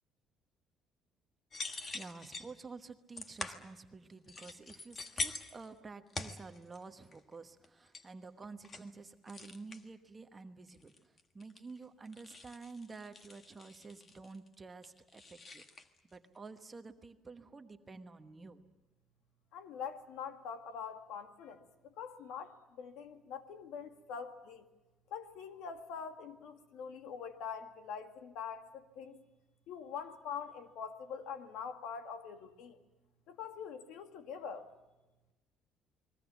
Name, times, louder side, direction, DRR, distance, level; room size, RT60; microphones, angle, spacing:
sound 1, 1.5-2.5 3.2-3.7 4.3-5.7 6.1-6.8 7.1-7.3 7.6-8.0 8.4-8.9 9.3-9.8 10.7-11.8 12.1-14.5 14.8-15.9, left 3 dB, 25° left, 1.4 m, -44 dB
voice 1, 1.6-15.6 16.0-18.6, right 4 dB, 15° right, 7 dB, 1.1 m, -50 dB
voice 2, 19.5-21.6 22.0-24.7 25.1-29.2 29.7-32.8 33.3-34.6, left 7 dB, 75° left, 7 dB, 2.1 m, -44 dB
30.0 x 21.0 x 7.2 m, 1.1 s
cardioid pair, 170°, 0 cm